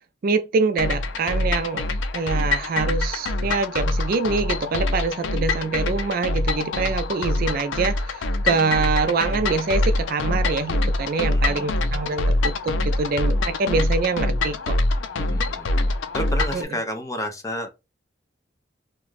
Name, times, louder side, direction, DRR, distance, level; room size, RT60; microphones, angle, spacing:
voice 1, 0.2-14.8 16.5-16.6, right 4 dB, 50° right, 0.3 m, -25 dB
sound 1, 0.8-16.6, left 2 dB, 80° left, 0.4 m, -24 dB
voice 2, 11.2-11.7 15.2-15.7 16.1-17.7, equal, 15° left, 0.4 m, -31 dB
2.4 x 2.2 x 3.1 m
head